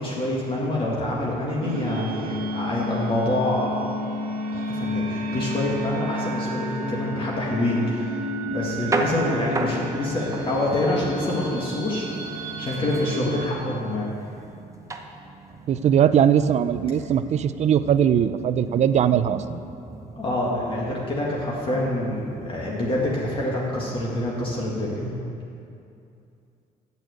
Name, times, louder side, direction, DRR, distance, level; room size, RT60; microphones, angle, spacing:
voice 1, 0.0-3.8 4.5-8.2 8.5-14.1 20.1-25.1, left 1 dB, 35° left, -5 dB, 1.8 m, -26 dB
sound 1, 1.6-13.5, equal, 80° right, 1.3 m, -31 dB
sound 2, 8.5-24.7, right 3 dB, 20° right, 0.8 m, -36 dB
voice 2, 15.7-19.6, right 9 dB, 50° right, 13 dB, 0.4 m, -20 dB
8.2 x 7.0 x 8.0 m, 2.6 s
cardioid pair, 110°, 15 cm